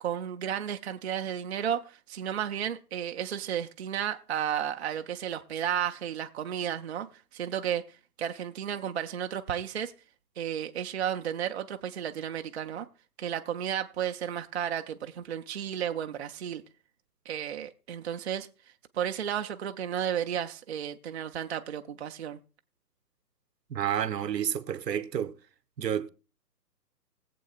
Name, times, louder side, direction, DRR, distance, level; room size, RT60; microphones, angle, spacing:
voice 1, 0.0-7.1 7.3-7.8 8.2-9.9 10.4-12.9 13.2-16.6 17.3-18.5 18.9-22.4, right 9 dB, 45° right, 0.5 m, -33 dB
voice 2, 23.7-25.4 25.8-26.1, right 9 dB, 80° right, 0.9 m, -30 dB
19.5 x 7.7 x 2.4 m
hypercardioid pair, 145°, 49 cm